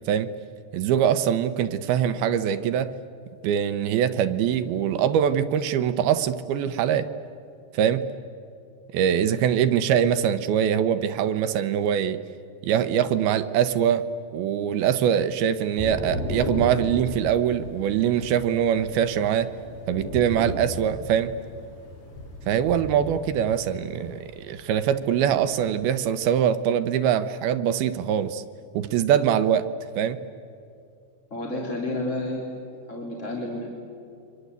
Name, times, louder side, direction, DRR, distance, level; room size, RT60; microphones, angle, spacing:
voice 1, 0.7-2.9 3.4-7.1 7.7-8.1 8.9-12.2 12.6-14.1 14.3-19.5 19.9-21.3 22.5-28.4 28.7-29.7 30.0-30.2, right 9 dB, 75° right, 10 dB, 2.5 m, -23 dB
Thunder / Rain, 15.8-25.7, left 1 dB, 45° left, 5.1 m, -35 dB
voice 2, 31.3-32.4 32.9-33.7, left 1 dB, 20° left, -2 dB, 2.9 m, -30 dB
29.5 x 24.0 x 8.2 m, 2.5 s
omnidirectional pair, 4.8 m